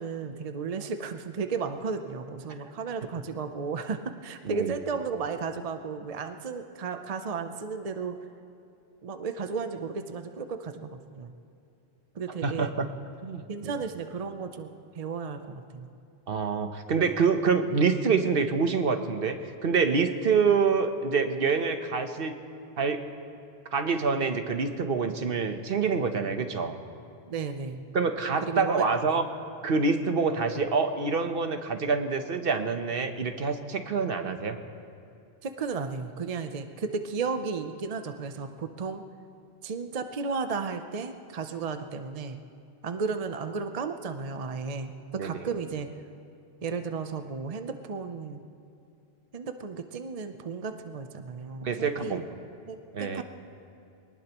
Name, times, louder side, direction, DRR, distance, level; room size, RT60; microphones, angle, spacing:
voice 1, 0.0-8.2 9.0-11.3 12.1-12.7 13.5-14.7 14.9-15.9 27.3-27.9 28.4-29.2 35.4-39.0 39.6-42.4 42.8-45.9 46.6-48.4 49.3-52.3 52.7-53.2, right 5 dB, 40° right, 7 dB, 0.7 m, -34 dB
voice 2, 12.4-12.9 13.2-13.4 16.3-19.4 19.6-22.4 22.8-23.1 23.7-26.7 27.9-29.2 29.6-34.6 45.1-45.3 51.6-52.2 52.9-53.2, right 5 dB, 65° right, 7 dB, 1.1 m, -26 dB
24.0 x 19.5 x 3.0 m, 2.7 s
omnidirectional pair, 1.1 m